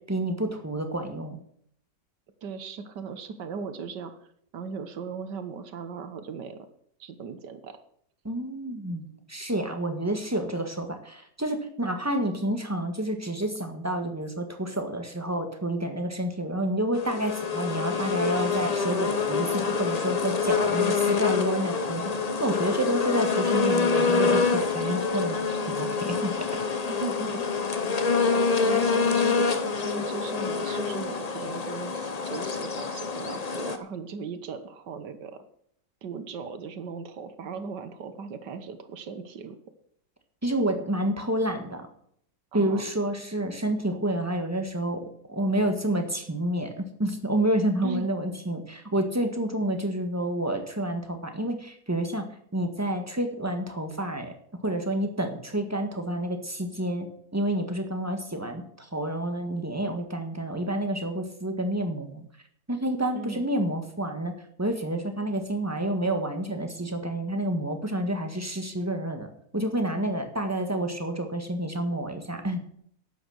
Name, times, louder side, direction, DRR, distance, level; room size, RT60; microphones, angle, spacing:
voice 1, 0.1-1.4 8.2-22.0 22.4-25.4 25.7-26.5 40.4-41.9 42.5-54.3 54.6-57.1 57.3-62.2 62.7-64.3 64.6-72.7, right 1 dB, 10° right, 5 dB, 1.4 m, -29 dB
voice 2, 2.4-4.1 4.5-6.7 7.0-7.8 26.9-27.9 28.6-35.4 36.0-39.6 42.5-42.9 47.8-48.1 63.1-63.5, right 5 dB, 80° right, 10 dB, 1.7 m, -38 dB
sound 1, 16.9-33.8, left 4 dB, 35° left, 0.7 m, -26 dB
11.5 x 9.1 x 6.4 m, 0.68 s
omnidirectional pair, 1.8 m